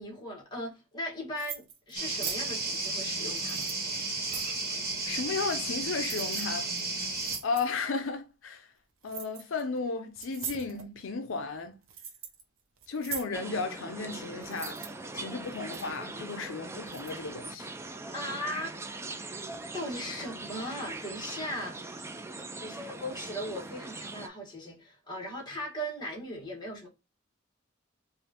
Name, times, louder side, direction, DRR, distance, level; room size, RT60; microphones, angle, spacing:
voice 1, 0.0-3.7 18.1-19.4 19.7-26.9, equal, 20° left, 1.5 m, -38 dB
sound 1, 1.4-1.9 2.2-2.4 3.3-4.6 5.5-5.8 6.0-6.5 6.8-6.9 7.2-7.7 9.0-9.6 10.2-10.9 11.5-12.4 12.8-13.3 14.4-14.9 15.5-16.0 16.9-17.1, right 7 dB, 85° right, 0.7 m, -41 dB
sound 2, 1.9-7.4, right 3 dB, 50° right, 1.3 m, -33 dB
voice 2, 5.0-6.7 7.4-8.7 9.0-11.8 12.9-14.8 15.1-17.7, left 4 dB, 75° left, 0.5 m, -34 dB
sound 3, 13.3-24.3, right 2 dB, 15° right, 0.3 m, -41 dB
4.9 x 2.5 x 2.8 m
head